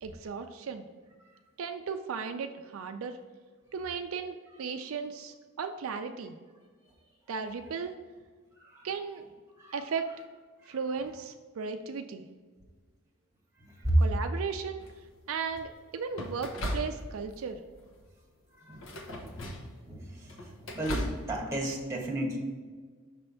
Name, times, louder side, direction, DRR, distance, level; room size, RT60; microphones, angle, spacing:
voice 1, 0.0-0.9 1.6-3.2 3.7-6.3 7.3-8.0 8.8-9.2 9.7-10.1 10.7-12.3 14.0-14.8 15.3-17.6, right 5 dB, 75° right, 6 dB, 0.4 m, -36 dB
voice 2, 13.6-14.0 18.6-18.9 19.8-20.4 20.7-22.4, right 1 dB, 15° right, -1 dB, 1.2 m, -32 dB
sound 1, 14.8-15.2 16.1-17.4 17.7-18.1 18.7-19.8 20.2-21.2, equal, 65° left, 1.0 m, -37 dB
6.0 x 3.3 x 5.5 m, 1.5 s
head